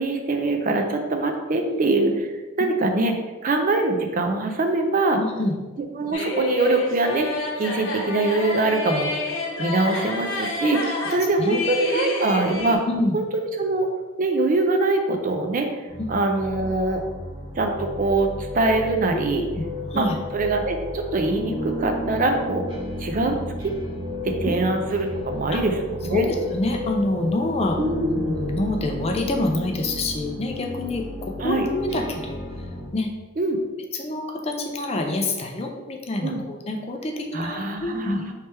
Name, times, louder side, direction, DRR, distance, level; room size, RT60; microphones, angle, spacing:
voice 1, 0.0-2.3 2.6-3.2 3.4-5.2 5.8-9.1 9.6-12.9 13.1-13.9 14.2-15.7 16.1-17.0 17.6-19.4 19.9-20.1 20.3-22.6 23.0-23.4 23.6-23.7 24.2-26.3 27.8-28.1 31.4-31.6 33.4-33.6 36.2-36.4 37.3-38.3, right 2 dB, 40° right, 4 dB, 0.4 m, -23 dB
voice 2, 5.2-5.5 11.4-11.7 11.9-12.0 12.9-13.2 16.0-16.1 19.1-20.2 24.5-24.6 25.5-25.6 26.1-27.8 28.2-32.6 32.9-33.1 33.9-38.2, left 2 dB, 30° left, 2 dB, 0.4 m, -27 dB
sound 1, 6.1-12.8, left 2 dB, 65° left, 0.9 m, -29 dB
sound 2, 15.9-32.9, left 1 dB, 25° right, 0.9 m, -33 dB
3.3 x 3.2 x 4.3 m, 1.2 s
head